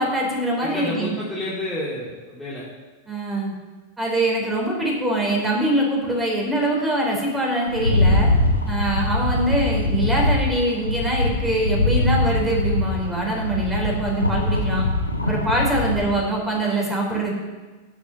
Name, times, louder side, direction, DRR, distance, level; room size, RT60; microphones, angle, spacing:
voice 1, 0.0-1.2 3.1-3.5 4.0-8.3 8.7-14.9 15.2-17.3, right 1 dB, 10° right, -2 dB, 4.3 m, -23 dB
voice 2, 0.6-2.6, left 1 dB, 5° left, -8 dB, 2.7 m, -30 dB
Rattle, 7.7-16.1, left 2 dB, 85° left, 1.1 m, -22 dB
11.0 x 7.3 x 6.5 m, 1.3 s
figure-of-eight pair, 90°, 0 cm